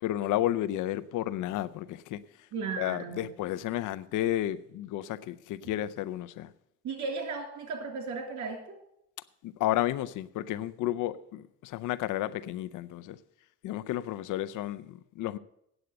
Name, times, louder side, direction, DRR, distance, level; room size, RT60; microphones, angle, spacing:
voice 1, 0.0-2.2 2.8-6.5 9.4-13.2 13.6-15.4, left 13 dB, 85° left, 0.6 m, -32 dB
voice 2, 2.5-3.3 6.8-8.6, right 4 dB, 70° right, 3.2 m, -35 dB
8.9 x 8.0 x 7.8 m
cardioid pair, 90°, 30 cm